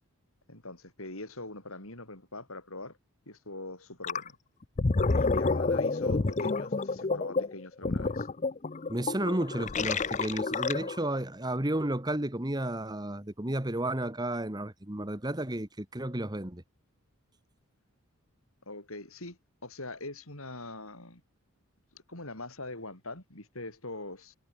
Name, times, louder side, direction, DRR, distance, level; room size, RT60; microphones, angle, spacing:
voice 1, 0.5-3.0 3.3-4.4 5.2-8.3 18.7-21.2 22.1-24.4, left 2 dB, 70° left, 7.9 m, -43 dB
Gurgling, 4.0-4.3 4.6-11.1, left 3 dB, 35° left, 0.6 m, -29 dB
voice 2, 8.9-16.6, right 1 dB, 20° right, 1.4 m, -32 dB
head